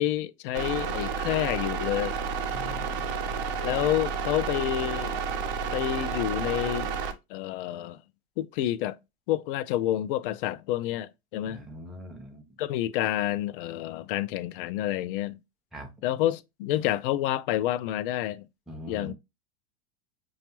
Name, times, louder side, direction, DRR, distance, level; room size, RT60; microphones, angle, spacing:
voice 1, 0.0-2.1 3.6-5.2 5.7-6.9 7.3-8.0 8.4-9.0 9.3-11.6 12.6-15.4 16.0-18.4 18.9-19.1, left 13 dB, 55° left, 0.4 m, -28 dB
sound 1, 0.5-7.1, right 5 dB, 55° right, 0.8 m, -31 dB
voice 2, 2.4-3.1 11.4-12.4 15.7-15.9 18.7-19.1, equal, ahead, 0.6 m, -42 dB
5.0 x 2.3 x 2.9 m
hypercardioid pair, 105°, 33 cm